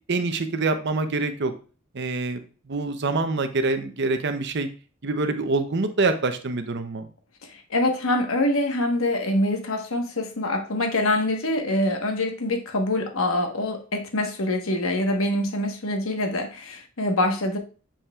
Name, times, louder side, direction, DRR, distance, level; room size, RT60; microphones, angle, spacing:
voice 1, 0.1-1.5 1.9-2.4 2.7-4.7 5.0-7.1, right 3 dB, 50° right, 8 dB, 0.7 m, -25 dB
voice 2, 7.7-17.6, left 1 dB, 70° left, 4 dB, 1.2 m, -25 dB
7.2 x 5.6 x 2.3 m, 0.37 s
head